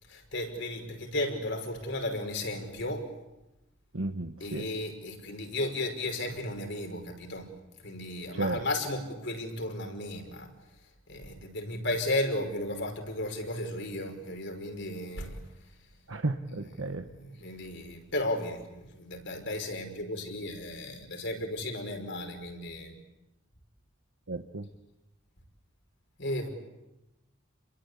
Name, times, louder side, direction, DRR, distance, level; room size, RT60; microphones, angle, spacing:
voice 1, 0.1-3.1 4.4-7.5 7.8-10.5 11.1-15.4 16.6-16.7 17.1-23.0 26.2-26.5, left 1 dB, 60° left, 4 dB, 5.6 m, -34 dB
voice 2, 3.9-4.6 8.3-8.6 16.1-17.0 24.3-24.6, right 2 dB, 75° right, 5 dB, 1.3 m, -33 dB
30.0 x 22.5 x 8.4 m, 0.98 s
head